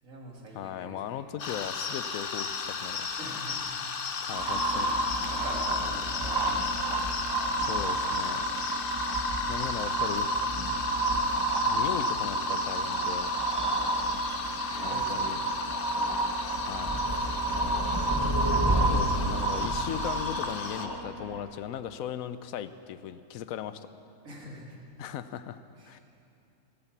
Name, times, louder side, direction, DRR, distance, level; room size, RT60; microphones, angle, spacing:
voice 1, 0.0-1.3 3.2-3.7 4.1-8.1 8.5-8.6 10.9-11.3 13.5-14.1 14.7-16.4 16.8-18.4 24.2-24.8 25.8-26.0, right 1 dB, 70° right, -1 dB, 2.5 m, -46 dB
voice 2, 0.5-3.2 4.2-4.9 6.5-6.7 7.6-8.4 9.5-10.3 11.7-13.3 14.7-15.4 16.7-16.9 18.9-23.9 25.0-25.6 25.9-26.0, left 10 dB, 75° left, 13 dB, 1.0 m, -37 dB
sound 1, 1.4-20.9, left 5 dB, 45° left, 0.8 m, -36 dB
sound 2, 4.3-21.4, right 2 dB, 20° right, 1.1 m, -29 dB
16.5 x 8.9 x 7.3 m, 2.7 s
omnidirectional pair, 1.5 m